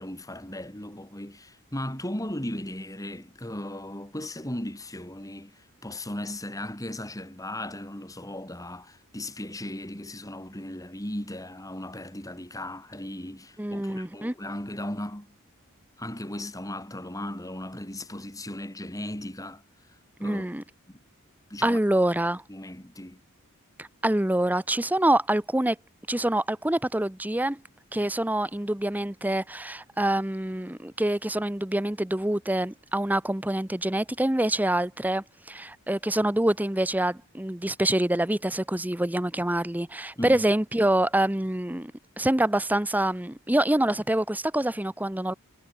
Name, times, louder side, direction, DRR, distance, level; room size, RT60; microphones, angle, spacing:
voice 1, 0.0-15.3 16.0-19.6 20.2-20.5 20.9-21.0 21.5-21.8 22.5-23.2 40.2-40.6, left 1 dB, 15° left, 4.3 m, -37 dB
voice 2, 13.6-14.3 20.2-20.6 21.6-22.4 23.8-25.8 26.1-27.6 27.9-41.9 42.2-45.3, right 1 dB, 10° right, 0.8 m, -26 dB
head